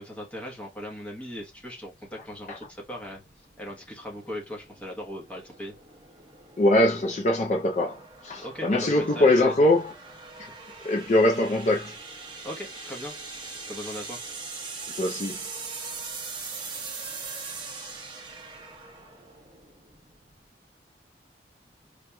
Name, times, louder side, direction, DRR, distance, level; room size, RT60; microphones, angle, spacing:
voice 1, 0.0-3.2 3.6-5.7 8.4-9.6 12.4-14.2, equal, 10° left, 1.0 m, -39 dB
sound 1, 1.5-20.5, right 4 dB, 25° right, 0.8 m, -41 dB
voice 2, 6.6-9.9 10.8-11.9 15.0-15.3, left 1 dB, 40° left, 0.4 m, -22 dB
4.9 x 2.9 x 2.2 m
head